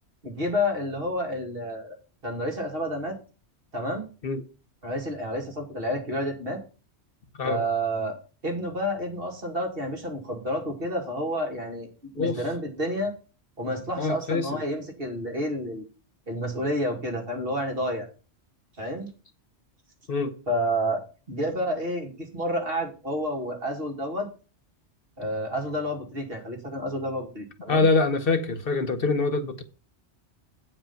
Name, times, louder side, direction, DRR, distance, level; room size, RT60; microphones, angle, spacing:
voice 1, 0.2-2.0 2.2-3.2 3.7-4.1 4.8-6.6 7.4-8.2 8.4-11.9 12.2-13.1 13.6-15.8 16.3-18.1 18.8-19.1 20.5-24.3 25.2-27.9, equal, 55° right, 2.5 m, -29 dB
voice 2, 14.0-14.6 20.1-20.3 27.7-29.6, left 3 dB, 55° left, 1.0 m, -24 dB
9.0 x 5.0 x 7.0 m
omnidirectional pair, 1.2 m